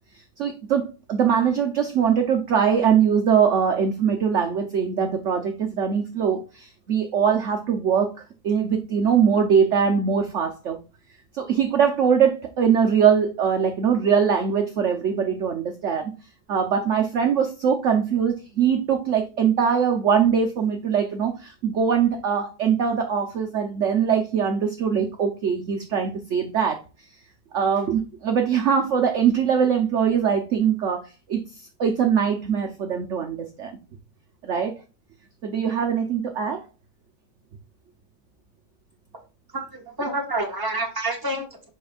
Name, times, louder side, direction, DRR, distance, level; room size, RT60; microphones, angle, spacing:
voice 1, 0.4-8.1 8.4-10.8 11.3-16.1 16.5-26.8 27.5-33.8 34.4-34.7 35.4-36.6, right 7 dB, 55° right, 1.0 m, -22 dB
voice 2, 39.5-41.7, right 2 dB, 15° right, 1.5 m, -28 dB
10.5 x 4.3 x 2.4 m
omnidirectional pair, 1.7 m